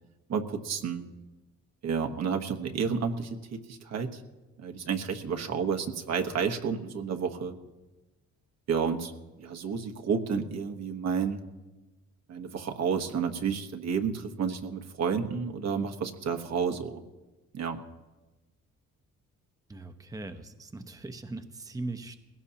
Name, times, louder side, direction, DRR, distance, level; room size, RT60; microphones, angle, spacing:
voice 1, 0.3-1.0 1.8-4.2 4.6-7.6 8.7-9.1 9.4-11.4 12.3-17.0 17.5-17.8, right 6 dB, 60° right, 5 dB, 1.3 m, -31 dB
voice 2, 19.7-22.2, right 2 dB, 10° right, 7 dB, 0.9 m, -39 dB
20.0 x 17.0 x 2.9 m, 1.1 s
cardioid pair, 90°, 30 cm